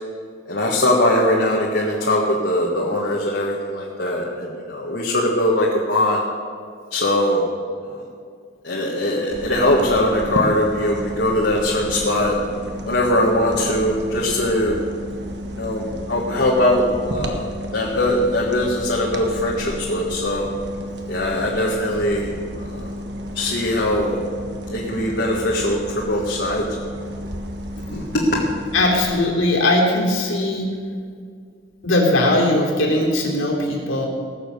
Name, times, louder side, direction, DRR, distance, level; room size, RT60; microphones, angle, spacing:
voice 1, 0.5-6.2 6.9-7.4 7.8-8.0 8.6-12.4 12.9-14.8 15.5-16.8 17.1-17.5 17.7-20.5 21.1-22.8 23.3-24.2 24.7-26.6 27.9-28.4, left 1 dB, 55° left, -3 dB, 1.6 m, -21 dB
sound 1, 9.3-29.2, equal, 55° right, 1.4 m, -32 dB
voice 2, 28.7-30.7 31.8-34.1, left 1 dB, 85° left, -1 dB, 3.3 m, -19 dB
19.0 x 7.4 x 7.0 m, 2.1 s
head